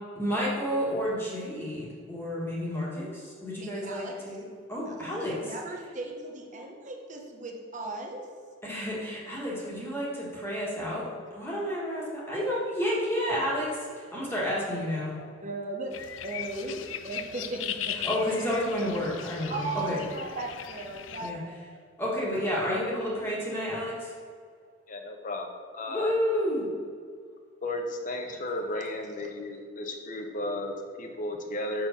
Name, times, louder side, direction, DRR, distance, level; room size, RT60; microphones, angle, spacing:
voice 1, 0.1-4.4 4.7-5.5 8.6-11.1 11.3-15.2 17.9-20.0 21.2-21.4 22.0-24.1 25.9-26.7, equal, 10° left, -6 dB, 1.6 m, -30 dB
voice 2, 3.6-4.2 4.9-8.3 15.4-18.1 19.5-21.6 28.8-28.9, right 2 dB, 40° right, 1 dB, 1.0 m, -37 dB
sound 1, 15.9-21.3, left 10 dB, 75° left, 0.4 m, -38 dB
voice 3, 24.9-26.1 27.6-31.9, left 1 dB, 45° left, 4 dB, 0.8 m, -34 dB
6.4 x 4.8 x 5.7 m, 2.1 s
head